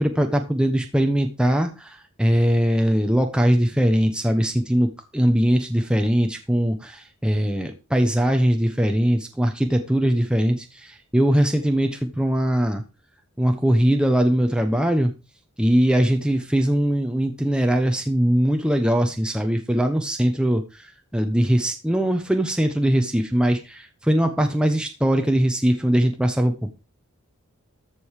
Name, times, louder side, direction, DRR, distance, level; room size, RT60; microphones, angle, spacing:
voice 1, 0.0-12.8 13.4-15.1 15.6-20.6 21.1-26.7, equal, 5° right, 5 dB, 1.0 m, -21 dB
14.0 x 5.4 x 4.8 m, 0.29 s
head